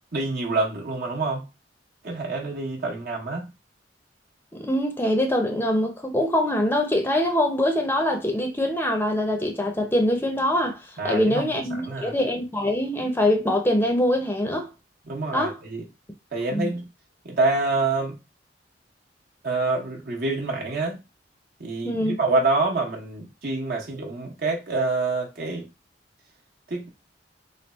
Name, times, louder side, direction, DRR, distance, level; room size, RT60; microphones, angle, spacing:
voice 1, 0.1-1.5 2.0-3.5 11.0-12.2 15.1-15.8 16.3-16.9 17.2-18.2 19.4-21.0 21.6-25.7 26.7-26.9, right 3 dB, 55° right, 0.9 m, -27 dB
voice 2, 4.5-14.7 15.3-15.6 16.5-16.7 21.8-22.2, left 1 dB, 10° left, 0.6 m, -23 dB
3.4 x 2.3 x 4.1 m
head